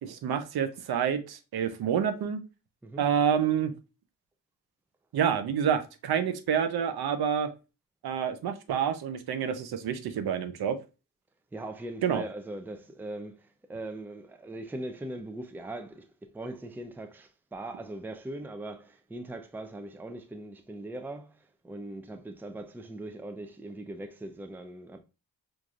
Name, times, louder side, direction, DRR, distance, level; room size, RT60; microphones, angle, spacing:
voice 1, 0.0-2.4 3.0-3.7 5.1-7.5 8.0-10.8 12.0-12.2, right 8 dB, 90° right, 0.6 m, -28 dB
voice 2, 11.5-16.1 16.3-25.0, right 1 dB, 5° right, 0.4 m, -40 dB
4.6 x 2.6 x 2.4 m
cardioid pair, 75°, 37 cm